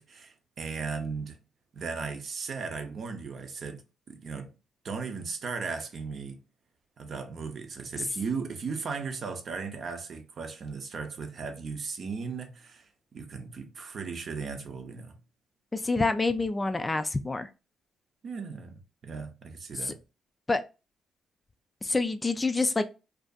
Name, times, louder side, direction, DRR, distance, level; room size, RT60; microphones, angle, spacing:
voice 1, 0.0-1.4 1.7-3.8 4.1-4.5 4.8-6.4 7.0-15.2 18.2-20.0, right 5 dB, 50° right, 0.6 m, -37 dB
voice 2, 15.7-17.5 19.8-19.9 20.5-20.6 21.8-22.8, left 3 dB, 20° left, 0.3 m, -27 dB
2.6 x 2.4 x 2.3 m
cardioid pair, 90°, 0 cm